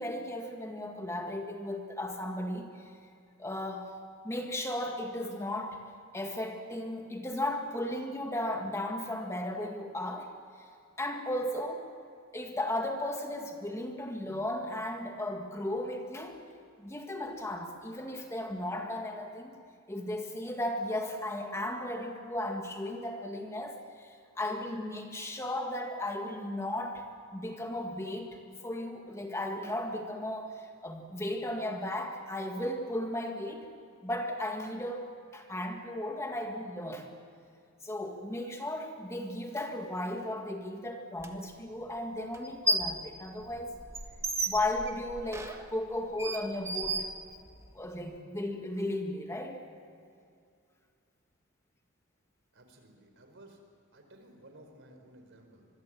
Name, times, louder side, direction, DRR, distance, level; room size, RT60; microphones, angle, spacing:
voice 1, 0.0-2.7 3.4-4.0 4.2-5.8 6.1-10.3 11.0-11.9 12.3-16.4 16.8-19.6 19.9-33.7 34.0-37.1 37.8-43.7 44.5-47.1 47.7-49.6, left 1 dB, 15° left, 3 dB, 1.9 m, -35 dB
sound 1, 41.2-41.3 42.3-43.0 43.4-47.7, right 1 dB, 15° right, 1.5 m, -34 dB
voice 2, 52.5-53.6 53.9-55.7, right 1 dB, 60° right, 5 dB, 4.6 m, -55 dB
26.0 x 22.5 x 7.6 m, 2.4 s
head